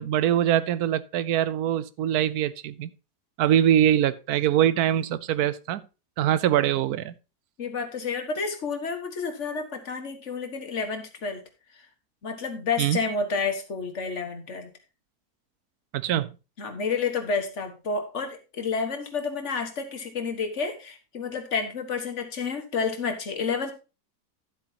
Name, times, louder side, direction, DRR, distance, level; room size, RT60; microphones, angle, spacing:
voice 1, 0.0-2.9 3.4-5.8 6.2-7.1 12.8-13.0 15.9-16.3, right 11 dB, 75° right, 1.1 m, -23 dB
voice 2, 7.6-11.4 12.2-14.7 16.6-23.7, left 5 dB, 50° left, 1.8 m, -30 dB
12.5 x 7.7 x 2.9 m
omnidirectional pair, 1.7 m